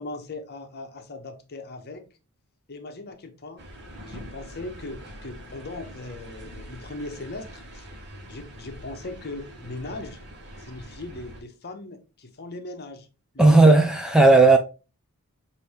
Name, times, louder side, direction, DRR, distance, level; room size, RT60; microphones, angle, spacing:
voice 1, 0.0-2.0 2.7-3.6 4.1-7.9 8.3-10.2 10.6-13.1 13.3-13.8, left 2 dB, 45° left, 0.8 m, -39 dB
sound 1, 3.6-11.4, equal, 50° right, 1.1 m, -43 dB
voice 2, 13.4-14.6, right 2 dB, 5° right, 0.4 m, -14 dB
5.7 x 2.7 x 3.3 m
head